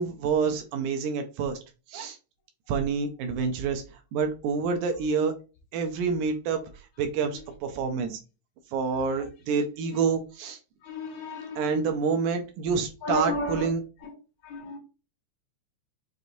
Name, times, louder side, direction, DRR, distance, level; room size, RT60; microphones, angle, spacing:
voice 1, 0.0-1.6 1.9-2.2 2.7-5.3 5.7-8.2 8.7-10.6 11.6-13.8, right 5 dB, 90° right, 5 dB, 2.0 m, -28 dB
voice 2, 10.8-11.9 13.0-13.7 14.0-14.1 14.4-14.8, left 2 dB, 75° left, 0 dB, 2.1 m, -32 dB
6.2 x 2.6 x 2.6 m, 0.32 s
omnidirectional pair, 3.4 m